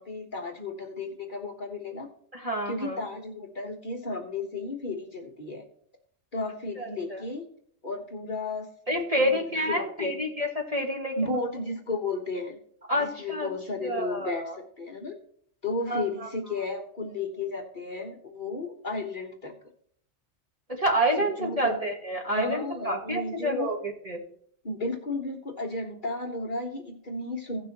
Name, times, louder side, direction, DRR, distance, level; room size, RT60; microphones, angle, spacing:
voice 1, 0.0-2.1 2.7-5.6 6.3-7.5 7.8-9.4 9.7-10.2 11.2-12.6 12.9-15.1 15.6-19.5 21.2-21.8 22.3-23.8 24.6-27.7, left 3 dB, 40° left, 2 dB, 1.3 m, -33 dB
voice 2, 2.3-3.0 6.8-7.2 8.9-11.4 12.9-13.5 13.8-14.6 15.9-16.3 20.7-24.2, equal, 30° right, 0 dB, 1.7 m, -28 dB
16.5 x 6.1 x 2.9 m, 0.63 s
omnidirectional pair, 1.3 m